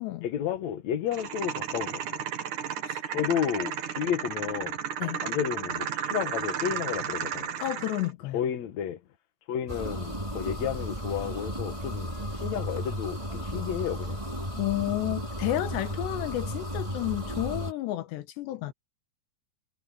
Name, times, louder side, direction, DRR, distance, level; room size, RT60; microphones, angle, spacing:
voice 1, 0.2-2.2 3.1-4.8 5.2-7.5 8.3-9.0 9.5-14.2, left 9 dB, 65° left, 1.9 m, -32 dB
sound 1, 1.1-8.1, right 8 dB, 55° right, 2.8 m, -33 dB
voice 2, 7.6-8.4 14.6-18.7, left 15 dB, 80° left, 3.5 m, -31 dB
sound 2, 9.7-17.7, equal, 10° right, 2.9 m, -34 dB
omnidirectional pair, 4.9 m